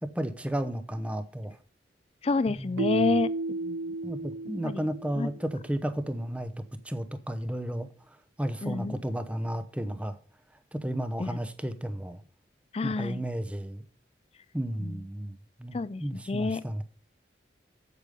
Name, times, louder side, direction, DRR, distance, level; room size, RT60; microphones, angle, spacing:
voice 1, 0.0-1.6 2.5-3.1 4.0-6.5 6.8-7.9 8.4-10.2 10.7-12.2 12.8-13.8 14.5-16.8, right 1 dB, 5° right, 0.8 m, -33 dB
voice 2, 2.2-3.9 4.6-4.8 5.2-5.3 8.6-9.0 11.2-11.4 12.7-13.2 14.8-15.0 15.7-16.8, left 3 dB, 35° left, 0.4 m, -29 dB
Keyboard (musical), 2.8-5.6, right 2 dB, 90° right, 0.4 m, -33 dB
8.4 x 8.2 x 5.2 m
head